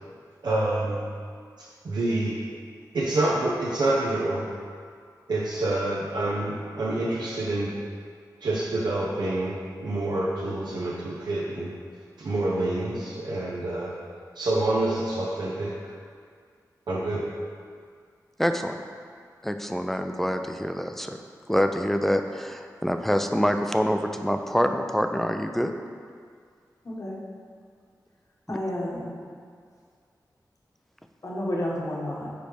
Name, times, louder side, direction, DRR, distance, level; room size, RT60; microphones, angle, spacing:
voice 1, 0.4-1.1 1.8-2.4 2.9-4.5 5.3-7.8 8.4-11.7 12.2-13.9 14.4-15.7 16.9-17.3, right 2 dB, 85° right, -6 dB, 0.7 m, -27 dB
voice 2, 18.4-18.8 19.4-21.2 21.5-25.7 28.5-28.6, equal, 5° left, 6 dB, 0.4 m, -26 dB
voice 3, 28.5-29.1 31.2-32.3, left 1 dB, 50° left, -4 dB, 1.3 m, -30 dB
5.2 x 4.4 x 5.0 m, 2.1 s
wide cardioid pair, 65°, 7 cm